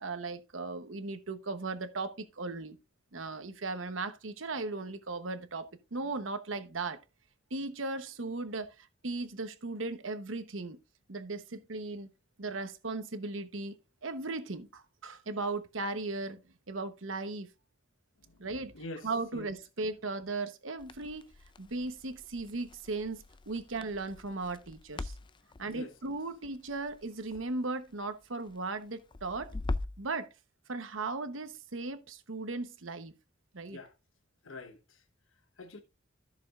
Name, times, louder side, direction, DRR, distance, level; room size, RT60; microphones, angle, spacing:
voice 1, 0.0-2.8 3.1-7.0 7.5-10.8 11.1-12.1 12.4-13.8 14.0-16.4 16.7-17.5 18.4-18.7 19.0-21.3 21.6-25.1 25.6-29.5 30.0-30.3 30.7-33.1 33.5-33.8, right 3 dB, 80° right, 1.0 m, -37 dB
voice 2, 18.7-19.5 25.7-25.9 33.7-33.9 34.4-35.0 35.6-35.8, left 2 dB, 80° left, 1.1 m, -45 dB
Crackle, 20.8-30.1, left 2 dB, 25° left, 0.4 m, -43 dB
14.0 x 6.9 x 2.5 m
head